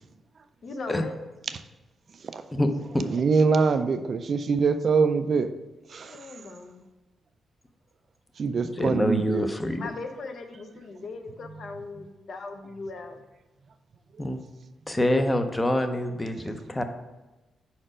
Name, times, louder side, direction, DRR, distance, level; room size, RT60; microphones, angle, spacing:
voice 1, 0.6-1.2 6.0-6.8 9.8-13.2, left 3 dB, 55° left, 6 dB, 0.6 m, -38 dB
voice 2, 3.1-5.5 5.9-6.2 8.4-9.5 14.2-14.3, right 5 dB, 45° right, 9 dB, 0.3 m, -24 dB
voice 3, 8.8-9.8 14.2-14.4 14.9-16.8, left 1 dB, 15° left, 7 dB, 0.5 m, -25 dB
5.0 x 4.3 x 5.0 m, 1.1 s
cardioid pair, 130°, 0 cm